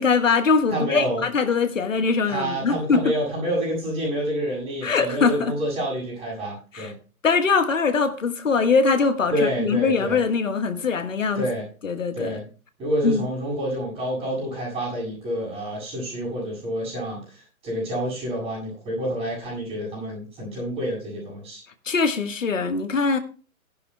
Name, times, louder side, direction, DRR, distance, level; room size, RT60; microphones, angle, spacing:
voice 1, 0.0-3.1 4.8-5.5 6.7-6.9 7.2-11.5 11.8-12.4 13.0-13.3 21.8-23.2, left 4 dB, 60° left, 1.6 m, -22 dB
voice 2, 0.7-1.2 2.3-6.9 9.3-10.2 11.4-11.7 12.1-12.4 12.8-21.6, equal, 15° right, 7.0 m, -28 dB
17.0 x 11.0 x 2.3 m
figure-of-eight pair, 130°, 43 cm